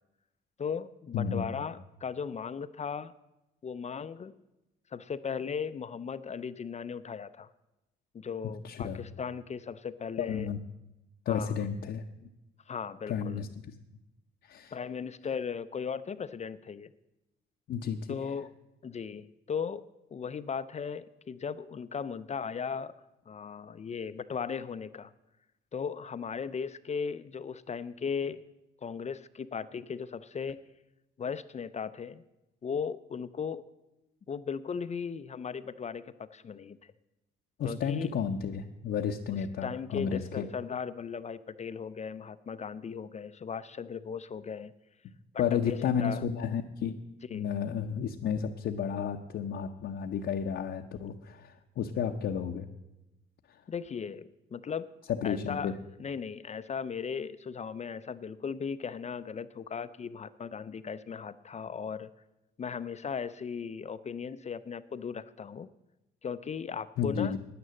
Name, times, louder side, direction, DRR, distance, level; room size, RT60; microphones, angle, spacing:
voice 1, 0.6-3.1 3.6-4.3 4.9-7.5 8.1-10.5 11.3-11.6 12.7-13.4 14.7-16.9 18.1-18.5 18.8-19.8 20.1-22.9 23.3-25.1 25.7-28.4 28.8-30.6 31.2-32.2 32.6-33.6 34.3-36.8 37.6-38.2 39.6-44.7 45.3-46.2 47.3-47.5 53.7-54.9 55.2-55.7 56.0-62.1 62.6-65.7 66.2-67.4, left 6 dB, 35° left, 14 dB, 0.5 m, -37 dB
voice 2, 8.6-9.0 10.2-10.6 11.3-12.0 13.1-13.5 14.4-14.7 17.7-18.2 37.6-40.4 45.4-47.0 47.3-52.7 55.1-55.7 67.0-67.4, left 7 dB, 65° left, 2 dB, 0.8 m, -32 dB
9.8 x 9.6 x 7.6 m, 0.95 s
cardioid pair, 90°, 20 cm